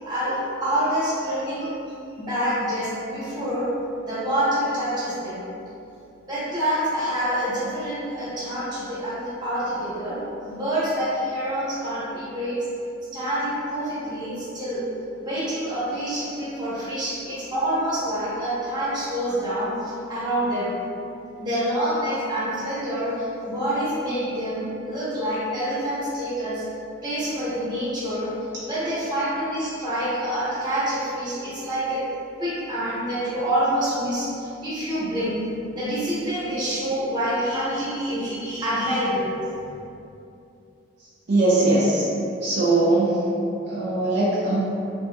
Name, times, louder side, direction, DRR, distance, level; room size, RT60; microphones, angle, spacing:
voice 1, 0.0-1.7 2.1-3.7 4.0-5.4 6.3-10.2 10.4-12.6 13.1-14.8 15.2-20.7 21.4-26.6 27.0-28.3 28.6-32.0 32.4-35.3 35.7-39.3, equal, 20° right, -10 dB, 0.9 m, -27 dB
voice 2, 41.3-42.1 42.4-43.2 43.7-44.8, right 2 dB, 55° right, -8 dB, 0.5 m, -20 dB
3.3 x 2.8 x 2.2 m, 2.7 s
head